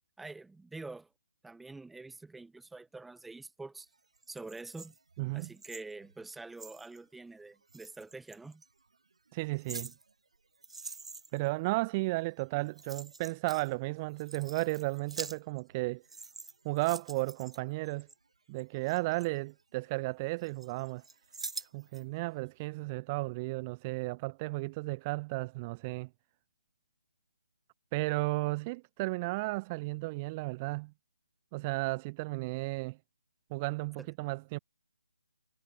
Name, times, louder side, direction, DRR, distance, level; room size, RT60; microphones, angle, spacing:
voice 1, 0.2-1.1 1.4-3.9 4.3-4.9 5.3-8.6 34.0-34.1, right 3 dB, 5° right, 1.5 m, -46 dB
sound 1, 4.2-7.0 7.7-8.7 9.3-11.5 12.4-12.5 12.7-13.7 14.0-15.8 16.0-18.1 18.6-20.0 20.4-22.0 22.4-22.5, right 4 dB, 75° right, 3.0 m, -46 dB
voice 2, 5.2-5.5 9.3-9.9 11.3-16.0 16.6-18.1 18.5-21.0 21.7-26.1 27.9-30.9 31.5-33.0 33.5-34.6, right 24 dB, 20° right, 0.6 m, -34 dB
hypercardioid pair, 160°, 3 cm